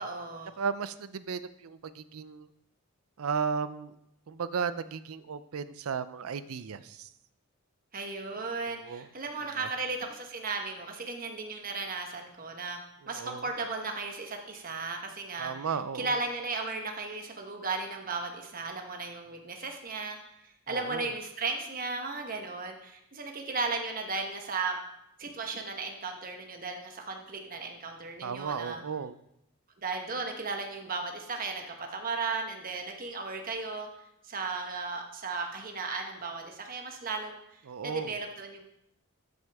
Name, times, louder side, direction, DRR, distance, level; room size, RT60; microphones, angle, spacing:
voice 1, 0.0-0.5 7.9-12.8 13.1-15.5 15.9-20.2 20.7-24.8 25.2-28.8 29.8-33.9 34.2-37.4 37.8-38.7, right 4 dB, 40° right, 3 dB, 1.1 m, -35 dB
voice 2, 0.6-2.5 3.2-4.0 4.3-7.1 8.7-9.1 9.6-9.7 13.0-13.5 15.4-16.2 20.7-21.1 28.2-29.1 37.7-38.2, right 6 dB, 90° right, 14 dB, 0.5 m, -35 dB
13.0 x 6.3 x 3.5 m, 0.80 s
head